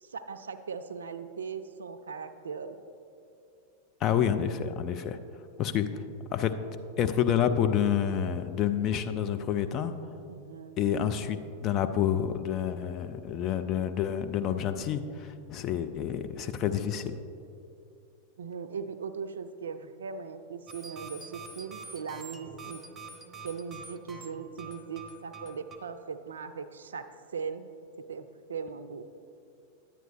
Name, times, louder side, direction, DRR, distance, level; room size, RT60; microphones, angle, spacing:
voice 1, 0.0-2.8 10.3-10.8 18.4-22.8 23.4-27.1 27.3-27.7 28.1-29.1, right 6 dB, 70° right, 10 dB, 0.4 m, -39 dB
voice 2, 4.0-5.2 5.6-5.9 6.3-6.6 7.0-9.9 10.8-17.1, left 9 dB, 35° left, 9 dB, 0.4 m, -28 dB
sound 1, 20.7-25.8, right 3 dB, 15° right, 0.9 m, -46 dB
10.0 x 9.1 x 3.0 m, 2.6 s
figure-of-eight pair, 90°, 0 cm